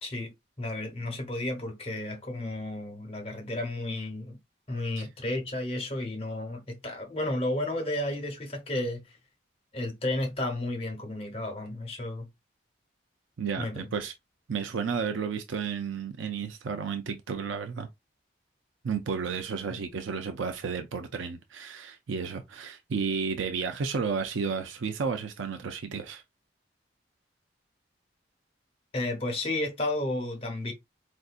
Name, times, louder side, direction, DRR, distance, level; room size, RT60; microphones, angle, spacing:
voice 1, 0.0-4.4 4.7-9.2 9.7-12.3 13.6-13.9 28.9-30.7, left 1 dB, 30° left, 1.0 m, -32 dB
voice 2, 13.4-14.1 14.5-17.9 18.8-26.2, right 5 dB, 85° right, 0.5 m, -32 dB
4.4 x 2.6 x 2.4 m
head